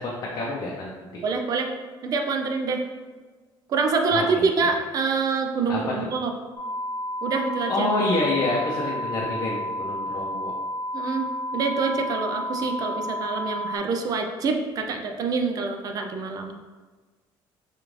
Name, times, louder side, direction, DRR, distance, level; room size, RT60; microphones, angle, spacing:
voice 1, 0.0-1.2 4.1-4.5 5.7-6.1 7.7-10.5, left 2 dB, 45° left, -4 dB, 0.6 m, -27 dB
voice 2, 1.2-1.7 2.0-2.8 3.7-6.3 7.2-7.9 10.9-16.6, right 4 dB, 45° right, 4 dB, 0.4 m, -26 dB
sound 1, 6.5-13.8, equal, 10° left, 0.9 m, -31 dB
5.1 x 2.4 x 3.1 m, 1.4 s
cardioid pair, 150°, 9 cm